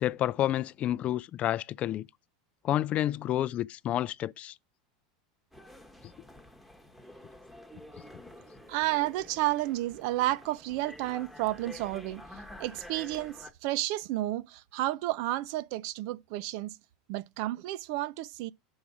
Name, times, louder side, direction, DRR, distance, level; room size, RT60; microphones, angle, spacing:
voice 1, 0.0-2.1 2.6-4.5, left 12 dB, 40° left, 0.3 m, -29 dB
sound 1, 5.5-13.5, left 1 dB, ahead, 1.1 m, -49 dB
voice 2, 8.7-12.2 12.6-16.7 17.1-18.5, right 16 dB, 65° right, 0.4 m, -31 dB
6.0 x 5.5 x 4.8 m
supercardioid pair, 110°, 3 cm